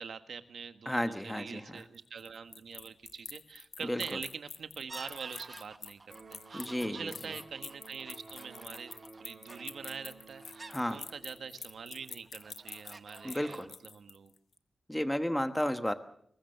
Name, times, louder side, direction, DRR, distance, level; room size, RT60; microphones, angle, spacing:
voice 1, 0.0-8.9 9.2-14.3, right 6 dB, 75° right, 9 dB, 1.5 m, -44 dB
voice 2, 0.9-1.8 3.8-4.0 6.5-7.1 10.7-11.0 13.2-13.7 14.9-15.9, equal, 5° left, 9 dB, 1.1 m, -32 dB
sound 1, 1.8-14.4, left 6 dB, 70° left, 1.0 m, -47 dB
sound 2, 4.9-11.5 12.0-13.7, right 3 dB, 30° right, 0.9 m, -51 dB
Electric guitar, 6.0-14.0, right 3 dB, 50° right, 5.7 m, -55 dB
23.0 x 20.0 x 6.7 m, 0.69 s
wide cardioid pair, 170°, 0 cm